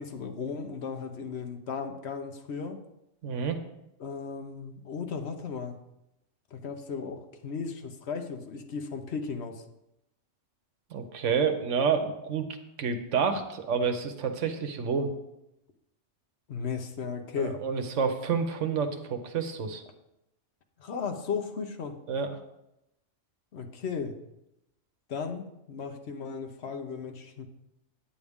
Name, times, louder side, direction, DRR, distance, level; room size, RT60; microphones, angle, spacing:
voice 1, 0.0-2.8 4.0-5.8 6.5-9.6 16.5-17.6 20.8-22.0 23.5-24.2 25.1-27.5, left 5 dB, 60° left, 6 dB, 1.0 m, -35 dB
voice 2, 3.2-3.6 10.9-15.1 17.4-19.8 22.1-22.3, right 6 dB, 75° right, 7 dB, 1.2 m, -29 dB
9.4 x 8.1 x 3.6 m, 0.87 s
omnidirectional pair, 1.3 m